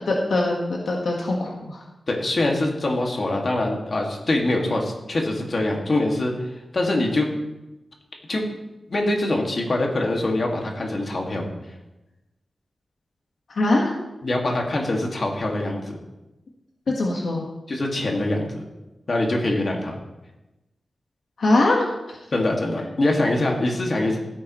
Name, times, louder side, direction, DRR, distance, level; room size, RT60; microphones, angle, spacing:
voice 1, 0.1-1.8 13.5-14.0 16.9-17.4 21.4-22.2, left 2 dB, 70° left, -1 dB, 1.5 m, -22 dB
voice 2, 2.1-7.3 8.3-8.4 8.9-11.5 14.2-16.0 17.7-18.6 19.1-20.0 22.3-24.2, left 2 dB, 45° left, 0 dB, 2.1 m, -24 dB
16.0 x 9.5 x 3.1 m, 1.0 s
wide cardioid pair, 140°, 0 cm